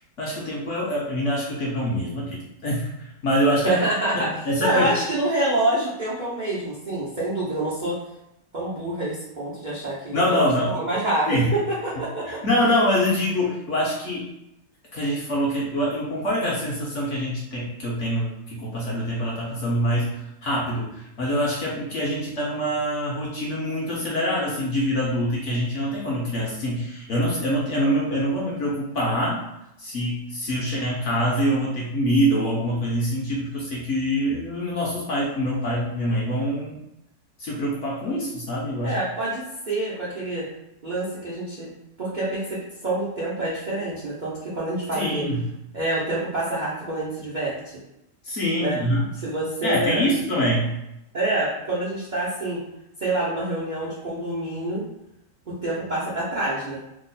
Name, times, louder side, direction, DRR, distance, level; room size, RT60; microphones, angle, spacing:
voice 1, 0.2-3.7 4.1-4.9 10.1-10.7 11.3-11.5 12.2-14.3 14.9-29.4 29.8-36.8 37.4-38.9 44.9-45.4 48.2-49.0 49.6-50.8, equal, 60° left, -4 dB, 0.8 m, -25 dB
voice 2, 3.6-8.0 8.5-12.4 38.8-40.5 40.8-41.7 42.0-45.3 45.7-47.8 48.6-48.8 49.2-50.1 51.1-52.6 53.0-54.8 55.5-56.8, right 2 dB, 90° right, -8 dB, 0.4 m, -27 dB
3.0 x 2.1 x 3.9 m, 0.84 s
omnidirectional pair, 1.9 m